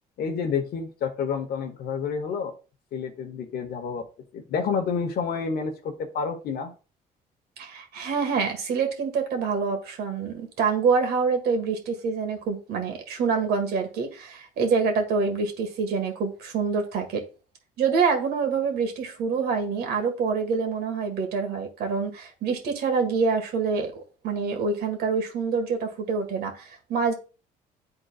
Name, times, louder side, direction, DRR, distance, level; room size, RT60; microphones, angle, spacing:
voice 1, 0.2-2.5 2.9-4.0 4.3-6.7, left 6 dB, 65° left, 1.1 m, -29 dB
voice 2, 7.6-17.2 17.8-27.1, right 5 dB, 70° right, 1.8 m, -26 dB
10.5 x 3.9 x 2.4 m
cardioid pair, 110°, 17 cm